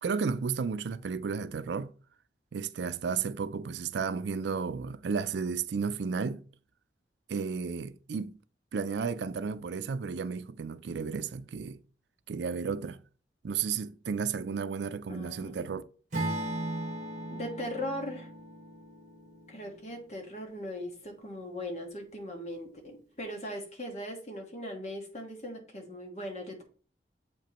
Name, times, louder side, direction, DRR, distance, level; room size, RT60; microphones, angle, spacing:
voice 1, 0.0-1.9 2.5-6.4 7.3-8.3 8.7-11.8 12.3-13.0 13.4-15.8, right 5 dB, 80° right, 0.4 m, -33 dB
voice 2, 15.1-15.8 17.3-18.3 19.5-26.6, left 1 dB, 40° left, 1.5 m, -39 dB
Acoustic guitar / Strum, 16.1-20.3, right 1 dB, 45° right, 1.4 m, -37 dB
7.6 x 5.2 x 3.0 m
head